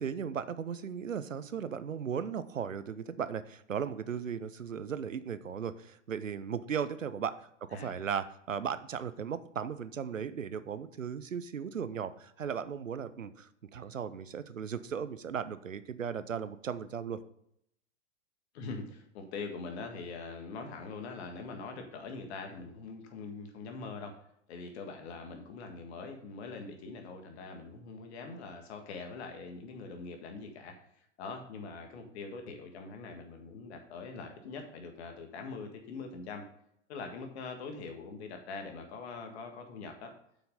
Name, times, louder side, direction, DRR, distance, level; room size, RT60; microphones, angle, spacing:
voice 1, 0.0-7.4 7.7-17.2, right 7 dB, 85° right, 14 dB, 0.7 m, -36 dB
voice 2, 18.5-24.2 24.5-30.8 31.2-36.4 36.9-40.1, left 4 dB, 55° left, 4 dB, 1.9 m, -43 dB
8.3 x 6.0 x 5.3 m, 0.73 s
figure-of-eight pair, 90°, 38 cm